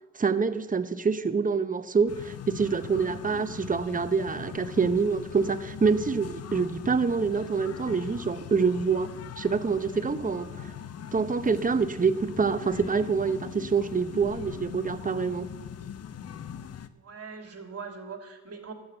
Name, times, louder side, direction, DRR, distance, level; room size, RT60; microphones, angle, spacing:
voice 1, 0.1-10.7 11.1-15.5, right 5 dB, 25° right, 11 dB, 0.9 m, -26 dB
sound 1, 2.1-16.9, left 8 dB, 45° left, 0.7 m, -40 dB
voice 2, 16.9-18.7, right 5 dB, 45° right, 3 dB, 2.8 m, -41 dB
12.0 x 8.1 x 7.8 m, 1.2 s
supercardioid pair, 65°, 35 cm